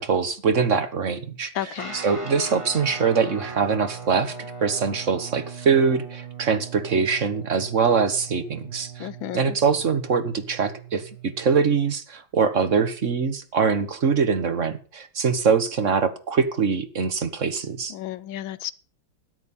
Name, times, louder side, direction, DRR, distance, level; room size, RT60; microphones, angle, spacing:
voice 1, 0.0-1.5 1.9-4.4 4.6-9.1 9.3-17.9, right 5 dB, 40° right, 1.6 m, -23 dB
voice 2, 1.5-2.0 9.0-9.6 17.9-18.7, left 12 dB, 70° left, 1.5 m, -32 dB
Guitar, 1.8-11.6, right 5 dB, 15° right, 3.1 m, -39 dB
13.0 x 10.5 x 5.5 m
omnidirectional pair, 2.4 m